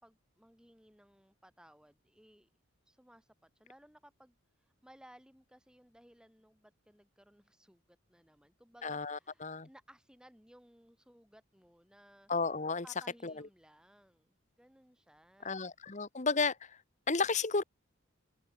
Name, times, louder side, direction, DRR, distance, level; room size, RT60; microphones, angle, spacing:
voice 1, 0.0-2.5 2.9-12.3 12.8-15.7, equal, 5° right, 4.2 m, -61 dB
voice 2, 8.8-9.7 12.3-12.8 13.2-13.3 15.4-16.8 17.1-17.6, left 4 dB, 35° left, 1.2 m, -32 dB
open air
head